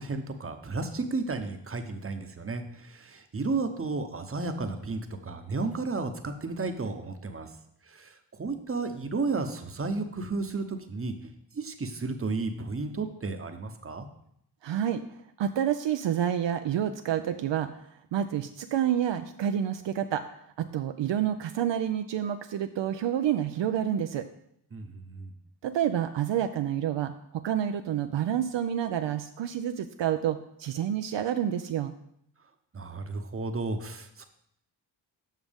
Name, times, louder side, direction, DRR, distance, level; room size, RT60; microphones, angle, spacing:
voice 1, 0.0-7.5 7.8-14.1 24.7-25.3 32.7-34.3, right 3 dB, 30° right, 7 dB, 0.9 m, -33 dB
voice 2, 14.6-17.7 18.1-20.2 20.6-24.3 25.6-31.9, right 10 dB, 70° right, 8 dB, 0.5 m, -29 dB
7.4 x 5.9 x 3.5 m, 0.72 s
cardioid pair, 45°, 45 cm